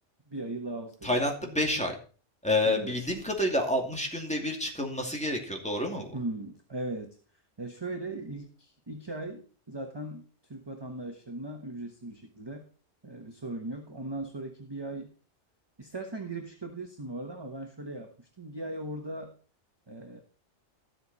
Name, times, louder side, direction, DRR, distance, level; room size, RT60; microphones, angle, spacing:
voice 1, 0.3-1.6 2.6-3.0 6.1-7.2 7.6-10.2 10.5-12.6 13.0-15.1 15.8-19.3 19.9-20.2, right 2 dB, 20° right, 4 dB, 1.2 m, -38 dB
voice 2, 1.0-1.9 2.4-6.1, left 1 dB, 5° left, 1 dB, 2.3 m, -29 dB
13.0 x 7.9 x 4.1 m, 0.39 s
omnidirectional pair, 1.2 m